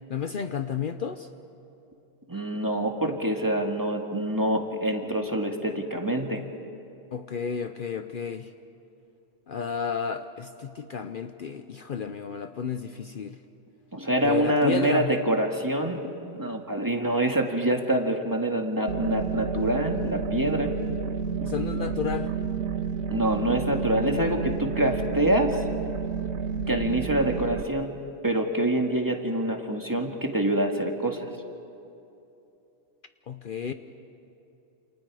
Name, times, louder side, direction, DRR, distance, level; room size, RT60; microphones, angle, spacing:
voice 1, 0.1-1.3 7.1-8.5 9.5-13.4 14.2-15.1 21.4-22.3 33.3-33.7, left 6 dB, 55° left, 9 dB, 0.8 m, -32 dB
voice 2, 2.3-6.4 13.9-16.0 16.3-20.7 23.1-25.6 26.7-27.9 28.2-31.3, right 1 dB, 20° right, 2 dB, 1.9 m, -26 dB
sound 1, 18.9-27.6, right 5 dB, 85° right, 1.1 m, -30 dB
28.5 x 28.5 x 4.9 m, 2.8 s
omnidirectional pair, 1.1 m